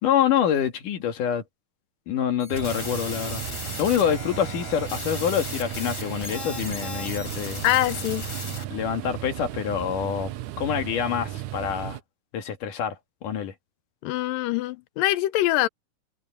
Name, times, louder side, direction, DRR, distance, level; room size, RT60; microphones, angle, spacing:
voice 1, 0.0-1.4 2.1-3.4 3.8-7.6 8.7-10.3 10.6-12.0 12.3-13.5, left 9 dB, 70° left, 3.4 m, -26 dB
sound 1, 2.4-8.6, left 2 dB, 30° left, 6.4 m, -36 dB
sound 2, 2.5-12.0, right 14 dB, 75° right, 1.9 m, -35 dB
voice 2, 7.6-8.3 14.0-15.7, left 16 dB, 90° left, 2.5 m, -24 dB
omnidirectional pair, 3.9 m